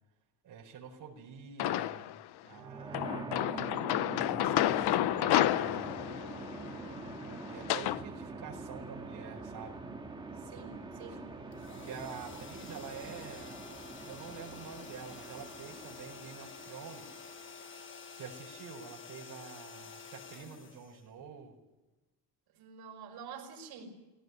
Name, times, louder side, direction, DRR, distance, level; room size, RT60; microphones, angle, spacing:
voice 1, 0.4-2.2 2.4-3.1 4.4-6.0 7.5-9.8 11.0-11.2 11.7-13.7 14.1-17.2 18.1-21.6, right 6 dB, 50° right, -1 dB, 4.8 m, -47 dB
sound 1, 1.6-2.2 2.9-8.0, left 13 dB, 70° left, 0.8 m, -31 dB
sound 2, 2.5-18.4, right 3 dB, 10° right, 2.1 m, -45 dB
voice 2, 3.5-3.9 10.4-11.3 22.5-24.0, right 5 dB, 75° right, 1 dB, 5.2 m, -48 dB
sound 3, 11.5-21.5, left 6 dB, 30° left, 1.3 m, -50 dB
20.5 x 17.5 x 9.5 m, 1.1 s
cardioid pair, 180°, 40 cm